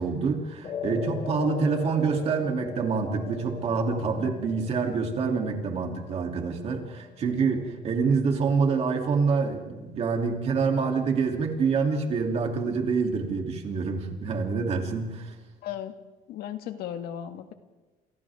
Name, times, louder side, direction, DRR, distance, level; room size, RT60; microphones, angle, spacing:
voice 1, 0.0-15.3, right 5 dB, 40° right, 2 dB, 3.1 m, -26 dB
sound 1, 0.6-9.1, left 7 dB, 35° left, 2.0 m, -41 dB
voice 2, 15.6-15.9 16.3-17.5, left 10 dB, 75° left, 7 dB, 1.8 m, -35 dB
29.5 x 29.0 x 3.7 m, 1.2 s
cardioid pair, 175°, 16 cm